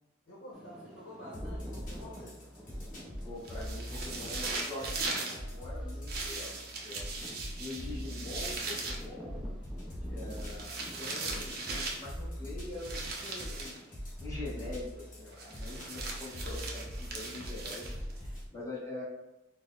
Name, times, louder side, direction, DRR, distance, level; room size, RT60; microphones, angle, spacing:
voice 1, 0.3-2.5, equal, 75° left, -5 dB, 0.8 m, -49 dB
sound 1, 0.5-18.4, equal, 5° right, 0.4 m, -52 dB
sound 2, 1.3-18.5, equal, 45° left, 0.9 m, -42 dB
voice 2, 3.2-7.2 7.5-9.4 10.0-13.8 14.2-17.8 18.1-19.0, left 2 dB, 15° left, -8 dB, 1.1 m, -44 dB
sound 3, 3.4-5.4 6.1-9.0 10.3-12.1 12.8-13.8 15.4-18.2, right 3 dB, 55° right, 0.6 m, -39 dB
4.2 x 2.1 x 2.4 m, 0.98 s
head